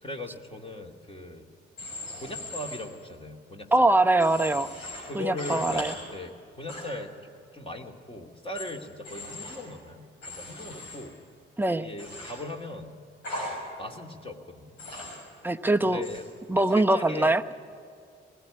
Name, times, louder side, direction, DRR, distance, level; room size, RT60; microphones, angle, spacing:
voice 1, 0.0-1.5 2.2-3.9 5.0-11.2 11.8-12.9 13.8-14.8 15.8-16.3 16.5-17.3, left 2 dB, 20° left, 3 dB, 2.5 m, -39 dB
Human voice / Train, 1.8-2.8 4.2-5.0 5.4-5.9 6.7-6.8 8.5-8.6 9.0-9.6 10.2-11.0 12.0-12.3 13.2-13.5 14.8-15.2 16.0-16.2, left 2 dB, 75° left, 6.5 m, -38 dB
voice 2, 3.7-4.7 5.1-5.9 11.6-11.9 15.4-16.0 16.5-17.5, right 2 dB, 5° right, 8 dB, 0.8 m, -23 dB
19.5 x 17.0 x 9.9 m, 2.3 s
hypercardioid pair, 40°, 29 cm